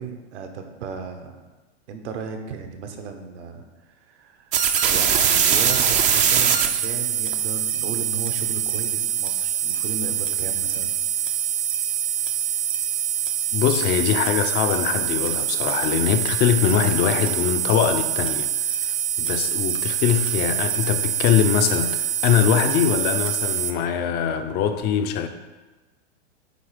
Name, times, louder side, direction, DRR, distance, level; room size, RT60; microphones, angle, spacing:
voice 1, 0.0-1.3 1.9-4.5 4.9-10.9, right 5 dB, 70° right, 5 dB, 1.2 m, -35 dB
sound 1, 4.5-23.7, right 9 dB, 20° right, 0.5 m, -24 dB
voice 2, 13.5-25.3, left 8 dB, 30° left, 7 dB, 0.5 m, -22 dB
9.4 x 3.4 x 4.9 m, 1.2 s
hypercardioid pair, 130°, 36 cm